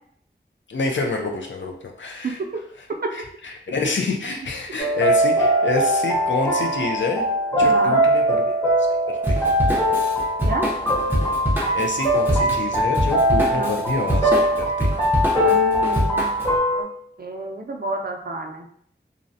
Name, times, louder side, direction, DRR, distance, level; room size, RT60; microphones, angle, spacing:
voice 1, 0.7-2.4 3.1-7.2 7.6-8.5 9.1-9.4 11.7-14.9, left 4 dB, 85° left, 1 dB, 0.4 m, -27 dB
voice 2, 2.2-2.6 3.0-3.1 7.6-8.1 10.5-10.7 13.5-13.7 15.3-16.3 16.7-16.9 17.2-18.7, right 3 dB, 55° right, 2 dB, 0.4 m, -29 dB
sound 1, 4.8-16.8, right 1 dB, 20° left, 1.0 m, -21 dB
Drum kit / Drum, 9.2-16.5, equal, 10° right, 0.6 m, -25 dB
2.5 x 2.0 x 2.6 m, 0.65 s
wide cardioid pair, 60°, 19 cm